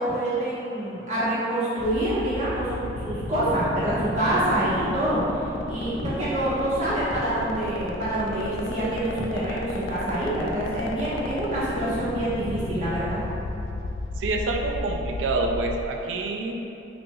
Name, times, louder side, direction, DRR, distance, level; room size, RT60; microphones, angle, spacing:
voice 1, 0.0-5.2 5.7-13.2, right 1 dB, 40° right, -10 dB, 1.2 m, -26 dB
sound 1, 1.8-15.8, left 3 dB, 85° left, 0.3 m, -33 dB
voice 2, 14.2-16.7, right 2 dB, 75° right, 2 dB, 0.4 m, -27 dB
5.8 x 2.6 x 2.4 m, 2.9 s
head